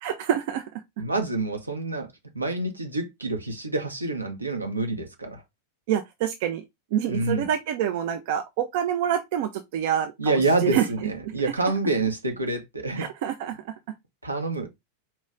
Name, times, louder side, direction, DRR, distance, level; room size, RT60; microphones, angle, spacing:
voice 1, 0.0-0.8 5.9-6.6 6.9-11.1 11.4-11.5 13.0-13.7, right 10 dB, 50° right, 0.6 m, -27 dB
voice 2, 1.0-5.4 7.1-7.5 10.2-13.1 14.2-14.7, right 2 dB, 80° right, 1.1 m, -27 dB
4.4 x 3.1 x 3.7 m
figure-of-eight pair, 90°, 0 cm